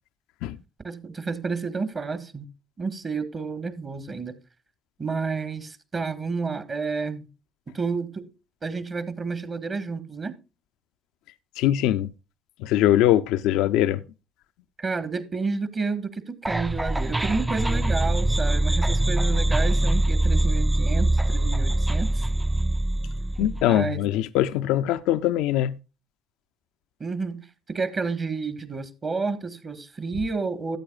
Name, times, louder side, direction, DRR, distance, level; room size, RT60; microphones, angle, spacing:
voice 1, 0.8-2.5 2.8-4.3 5.0-7.3 7.7-8.3 8.6-10.3 14.8-22.2 23.4-24.0 27.0-27.4 27.7-30.8, right 4 dB, 40° right, 1.4 m, -30 dB
voice 2, 11.6-12.1 12.6-14.0 23.4-25.7, left 12 dB, 75° left, 0.4 m, -22 dB
sound 1, 16.5-23.6, right 1 dB, 10° right, 0.4 m, -23 dB
14.0 x 8.4 x 2.3 m
hypercardioid pair, 55°, 0 cm